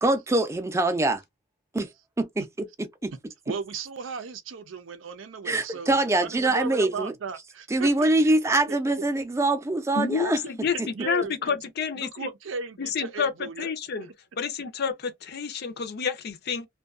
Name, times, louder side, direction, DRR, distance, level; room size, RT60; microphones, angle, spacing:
voice 1, 0.0-1.2 1.7-1.9 2.2-3.1 5.4-7.1 7.7-10.4 10.8-10.9, right 2 dB, 15° right, 0.4 m, -24 dB
voice 2, 3.5-5.9 6.2-8.1 8.7-8.8 10.9-11.6 12.0-13.7 14.0-14.1, right 5 dB, 85° right, 0.5 m, -36 dB
voice 3, 10.0-12.3 12.8-14.1 14.4-16.7, left 6 dB, 55° left, 0.5 m, -29 dB
2.6 x 2.2 x 2.3 m
head